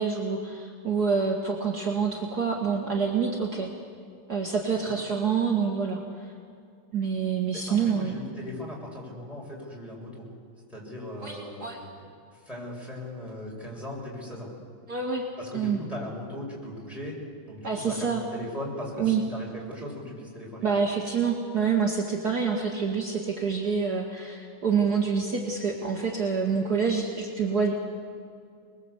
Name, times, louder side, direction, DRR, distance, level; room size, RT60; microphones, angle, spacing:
voice 1, 0.0-3.7 4.3-6.3 6.9-8.1 11.2-11.8 14.9-15.2 15.5-15.8 17.6-18.2 19.0-19.2 20.6-27.7, right 5 dB, 50° right, 0 dB, 2.5 m, -27 dB
voice 2, 7.5-10.3 10.7-14.5 15.4-17.2 17.5-20.7, left 1 dB, ahead, -4 dB, 7.0 m, -38 dB
27.5 x 21.0 x 8.3 m, 2.3 s
omnidirectional pair, 2.2 m